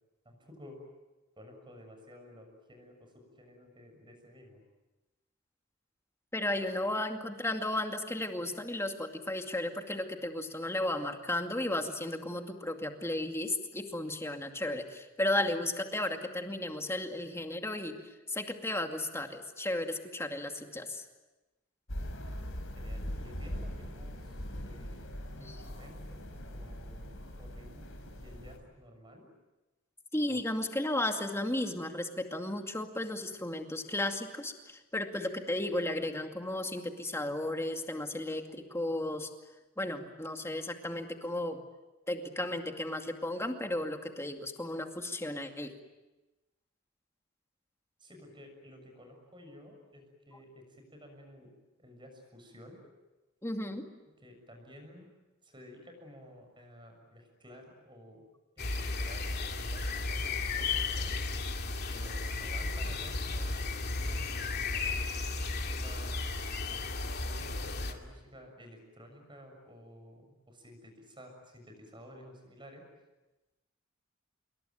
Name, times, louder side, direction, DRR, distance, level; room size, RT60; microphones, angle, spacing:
voice 1, 0.3-0.8 1.4-4.6 22.7-25.1 25.4-26.3 26.5-27.9 28.2-29.3 30.3-30.4 48.0-51.5 51.8-52.8 54.1-55.1 55.4-58.3 58.6-61.2 61.9-65.2 65.7-67.1 67.4-72.8, equal, 25° right, 3 dB, 6.7 m, -53 dB
voice 2, 6.3-21.1 25.5-25.6 30.1-39.3 39.8-41.6 42.1-45.7 53.4-53.9, left 1 dB, 15° left, 5 dB, 2.3 m, -34 dB
sound 1, 21.9-28.6, equal, 75° left, 5.0 m, -41 dB
sound 2, 58.6-67.9, left 3 dB, 55° left, 2.6 m, -34 dB
27.0 x 23.0 x 9.3 m, 1.1 s
head